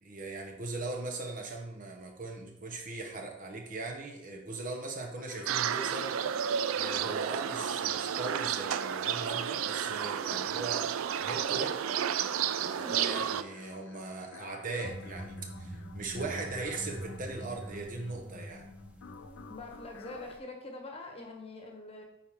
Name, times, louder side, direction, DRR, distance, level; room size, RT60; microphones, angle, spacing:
voice 1, 0.0-6.1 6.7-11.8 12.6-18.7, right 3 dB, 40° right, 2 dB, 0.9 m, -39 dB
sound 1, 5.2-20.3, left 6 dB, 70° left, 0.4 m, -52 dB
sound 2, 5.5-13.4, right 9 dB, 80° right, 0.3 m, -31 dB
voice 2, 12.8-13.3 19.2-22.0, left 2 dB, 30° left, 2 dB, 1.2 m, -44 dB
sound 3, 14.8-20.4, right 1 dB, 5° right, 0.7 m, -44 dB
8.9 x 4.5 x 3.6 m, 0.87 s
head